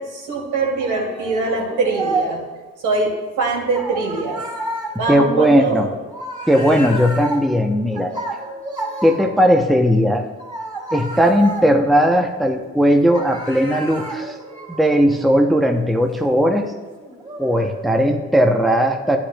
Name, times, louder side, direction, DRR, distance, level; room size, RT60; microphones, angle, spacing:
voice 1, 0.0-2.4 2.8-3.1 3.4-4.4 5.0-5.9, right 3 dB, 85° right, -2 dB, 2.5 m, -22 dB
sound 1, 0.8-2.6 3.7-9.7 10.4-12.8 13.1-18.2, right 2 dB, 15° right, 2.8 m, -31 dB
voice 2, 5.1-5.9 6.5-8.1 9.0-10.3 10.9-14.4 14.7-16.7 17.4-19.2, equal, ahead, 3 dB, 0.7 m, -17 dB
11.5 x 10.0 x 2.2 m, 1.3 s
cardioid pair, 90°, 30 cm